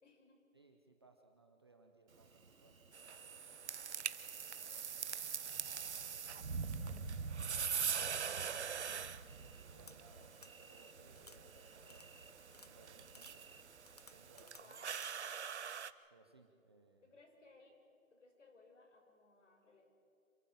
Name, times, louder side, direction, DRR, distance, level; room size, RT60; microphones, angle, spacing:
voice 1, 0.0-0.4 14.6-15.0 17.0-17.8 18.1-19.9, left 3 dB, 60° left, 3 dB, 5.7 m, -63 dB
voice 2, 0.5-2.8 9.3-13.4 14.1-14.8 15.2-15.3 16.1-17.1, right 3 dB, 20° right, 4 dB, 0.7 m, -65 dB
Thunder, 2.1-14.4, right 4 dB, 80° right, 2.4 m, -50 dB
sound 1, 2.9-15.9, right 7 dB, 55° right, 0.8 m, -44 dB
sound 2, 9.9-10.0 10.4-10.5 11.2-11.4 11.9-12.1 12.5-12.7 13.1-13.3 13.9-14.6 15.0-15.1, left 3 dB, 30° left, 0.5 m, -58 dB
27.5 x 15.0 x 7.4 m, 2.5 s
hypercardioid pair, 165°, 41 cm